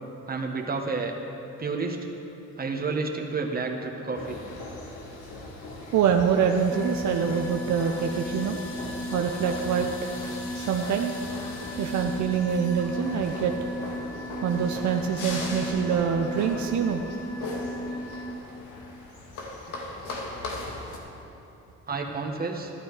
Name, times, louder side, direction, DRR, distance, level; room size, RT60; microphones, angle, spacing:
voice 1, 0.3-1.1 1.6-2.1 2.6-4.4 21.9-22.7, right 4 dB, 30° right, 2 dB, 1.5 m, -30 dB
sound 1, 4.1-21.0, left 2 dB, 85° left, 1.8 m, -39 dB
voice 2, 5.9-8.6 9.1-9.9 10.5-11.1 11.8-13.5 14.4-17.0, right 7 dB, 70° right, 3 dB, 0.8 m, -25 dB
sound 2, 6.7-18.4, equal, 10° left, 0.8 m, -36 dB
12.5 x 11.5 x 4.9 m, 3.0 s
cardioid pair, 90°, 30 cm